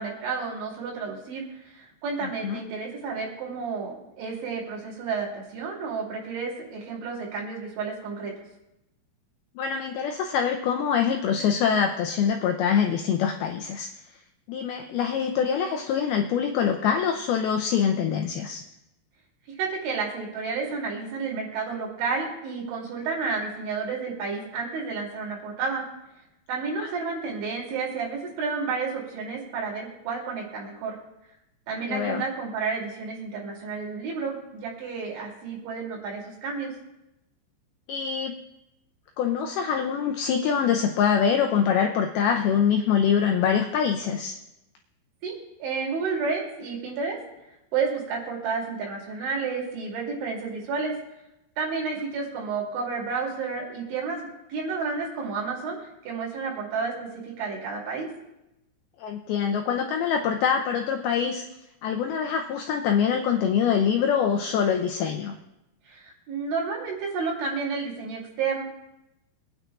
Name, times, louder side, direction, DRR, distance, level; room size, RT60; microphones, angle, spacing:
voice 1, 0.0-8.3 19.6-25.8 26.5-31.0 31.7-36.7 45.2-45.3 45.6-47.2 47.7-50.9 51.6-55.8 56.0-58.1 65.9-68.6, right 4 dB, 90° right, -3 dB, 5.1 m, -31 dB
voice 2, 9.6-13.9 14.5-18.6 26.8-26.9 31.8-32.2 37.9-38.3 39.2-44.4 59.0-61.4 61.8-65.4, left 7 dB, 90° left, 4 dB, 2.2 m, -24 dB
25.0 x 9.7 x 2.4 m, 0.91 s
omnidirectional pair, 5.2 m